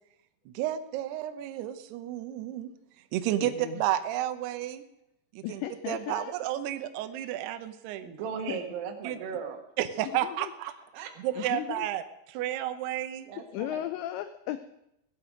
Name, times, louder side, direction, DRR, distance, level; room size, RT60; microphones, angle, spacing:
voice 1, 0.5-2.7 3.1-4.8 5.3-8.1 9.0-9.2 9.8-10.7 11.2-13.3, right 12 dB, 85° right, 9 dB, 2.3 m, -32 dB
voice 2, 3.4-3.8 5.4-6.3 8.5-8.6 10.0-10.5 11.4-11.9 13.5-14.6, left 13 dB, 90° left, 11 dB, 2.5 m, -36 dB
voice 3, 8.0-9.6 10.6-11.5 13.3-13.9, right 7 dB, 65° right, 3 dB, 2.6 m, -38 dB
17.5 x 12.0 x 5.1 m, 0.82 s
omnidirectional pair, 5.8 m